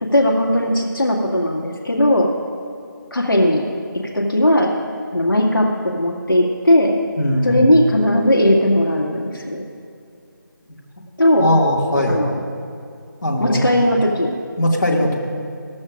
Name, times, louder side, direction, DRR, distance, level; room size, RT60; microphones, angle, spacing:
voice 1, 0.0-2.3 3.1-3.7 4.1-4.7 5.1-7.0 7.4-9.6 11.2-11.6 12.1-12.3 13.4-14.4, left 1 dB, 90° left, -1 dB, 2.2 m, -17 dB
voice 2, 7.2-7.7 11.4-12.2 13.2-13.7 14.6-15.2, left 1 dB, 65° left, -2 dB, 2.2 m, -19 dB
22.5 x 12.0 x 2.6 m, 2.5 s
figure-of-eight pair, 165°, 11 cm